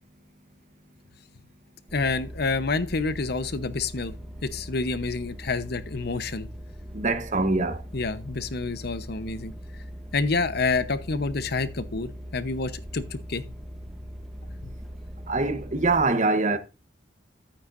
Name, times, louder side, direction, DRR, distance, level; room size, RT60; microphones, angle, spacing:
voice 1, 1.9-4.1 4.4-6.5 7.9-9.5 10.1-13.5 14.6-14.7, left 3 dB, 60° left, 0.9 m, -28 dB
sound 1, 1.9-16.1, equal, ahead, 0.9 m, -41 dB
voice 2, 6.9-7.8 15.3-16.6, right 3 dB, 40° right, 1.0 m, -24 dB
12.5 x 8.7 x 2.6 m
head